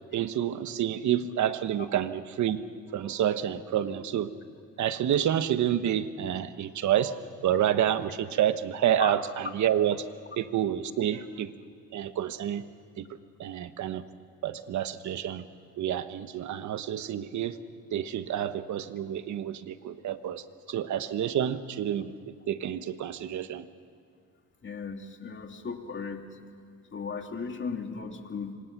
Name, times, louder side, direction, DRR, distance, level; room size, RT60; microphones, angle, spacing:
voice 1, 0.1-2.6 2.9-4.3 4.8-10.0 10.4-11.5 11.9-12.7 13.0-13.1 13.4-14.0 14.4-15.4 15.8-17.6 17.9-23.6, right 10 dB, 70° right, 11 dB, 1.2 m, -29 dB
voice 2, 24.6-26.3 26.9-28.5, left 5 dB, 40° left, 4 dB, 2.6 m, -36 dB
26.5 x 25.5 x 6.1 m, 2.2 s
cardioid pair, 90°, 30 cm